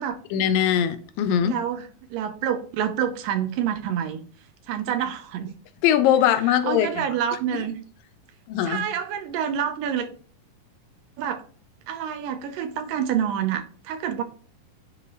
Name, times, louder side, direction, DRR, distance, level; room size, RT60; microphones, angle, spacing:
voice 1, 0.3-1.6 5.8-7.0 7.5-7.6 8.5-8.9, left 10 dB, 80° left, 11 dB, 2.2 m, -21 dB
voice 2, 1.4-4.2 4.7-5.5 6.5-7.8 8.6-10.1 11.2-11.4 11.9-14.2, right 9 dB, 75° right, 8 dB, 2.1 m, -27 dB
10.0 x 4.3 x 3.0 m, 0.42 s
omnidirectional pair, 4.4 m